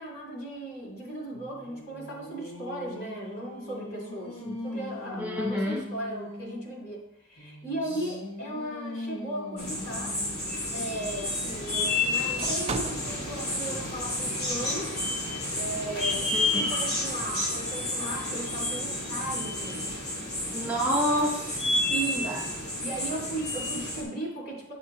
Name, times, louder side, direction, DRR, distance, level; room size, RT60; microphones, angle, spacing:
voice 1, 0.0-7.0 7.3-10.2 10.7-14.9 15.5-19.8 21.9-22.5 22.8-24.7, right 1 dB, 45° left, -3 dB, 2.9 m, -36 dB
Singing, 1.3-6.7 7.4-11.2, left 1 dB, 70° left, 1.7 m, -41 dB
voice 2, 5.2-5.8 16.3-16.6 20.5-21.7 22.2-22.4, equal, 10° right, -2 dB, 0.9 m, -28 dB
sound 1, 9.6-24.0, left 2 dB, 90° left, 2.3 m, -30 dB
sound 2, 10.0-10.6 11.3-13.3 14.9-15.4, right 4 dB, 30° right, 0.4 m, -38 dB
7.9 x 7.2 x 2.8 m, 0.76 s
head